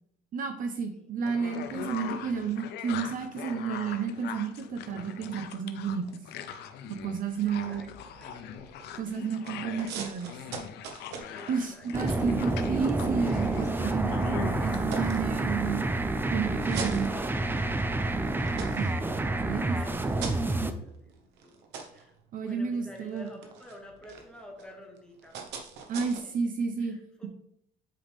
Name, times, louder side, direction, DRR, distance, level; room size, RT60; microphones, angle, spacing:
voice 1, 0.3-6.2 7.0-7.8 9.0-10.4 11.5-15.8 16.3-17.1 18.8-18.9 19.5-19.8 22.3-23.3 25.9-27.0, right 6 dB, 55° right, 6 dB, 0.8 m, -31 dB
sound 1, 1.2-15.1, left 8 dB, 80° left, 0.7 m, -41 dB
sound 2, 6.9-9.2 9.4-14.1 14.6-15.9 16.4-17.8 18.2-26.2, right 5 dB, 90° right, 1.2 m, -44 dB
voice 2, 7.4-8.7 9.4-9.5 11.3-12.4 16.9-18.0 19.6-21.6 21.9-25.6 26.0-27.3, equal, 5° left, 0 dB, 2.0 m, -51 dB
sound 3, 11.9-20.7, right 2 dB, 10° right, 0.6 m, -29 dB
7.7 x 5.0 x 3.5 m, 0.72 s
cardioid pair, 110°, 17 cm